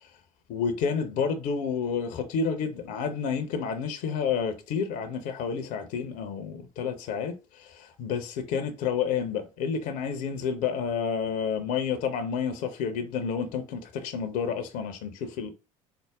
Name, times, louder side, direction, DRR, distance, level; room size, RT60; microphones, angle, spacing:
voice 1, 0.5-15.5, left 6 dB, 50° left, 0.7 m, -30 dB
4.7 x 2.1 x 3.5 m
figure-of-eight pair, 65°, 18 cm